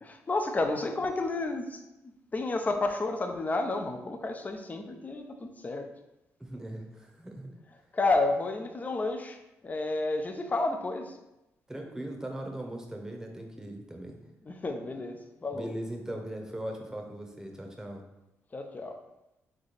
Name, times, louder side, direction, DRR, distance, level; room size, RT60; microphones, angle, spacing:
voice 1, 0.0-5.9 7.9-11.1 14.4-15.7 18.5-19.0, left 2 dB, 30° left, 5 dB, 0.6 m, -31 dB
voice 2, 6.4-7.5 11.7-14.2 15.5-18.0, right 1 dB, 10° right, 2 dB, 0.9 m, -39 dB
3.7 x 3.4 x 4.1 m, 0.91 s
cardioid pair, 70°, 5 cm